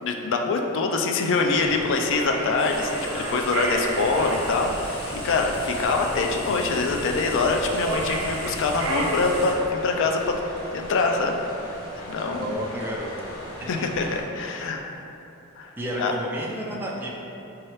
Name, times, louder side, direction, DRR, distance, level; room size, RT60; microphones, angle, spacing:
voice 1, 0.0-10.4 10.7-11.4 12.1-12.5 13.7-15.0 15.6-15.7 16.0-16.1, left 3 dB, 55° left, 3 dB, 0.4 m, -24 dB
sound 1, 1.4-14.2, left 1 dB, 75° left, 0.9 m, -40 dB
sound 2, 2.1-4.5 7.7-9.8, right 2 dB, 70° right, 0.6 m, -31 dB
sound 3, 2.6-9.5, left 1 dB, 25° left, 0.7 m, -37 dB
voice 2, 12.4-13.1 13.6-13.8 15.8-17.1, right 1 dB, 10° right, -4 dB, 0.4 m, -31 dB
4.6 x 3.1 x 3.0 m, 2.9 s
head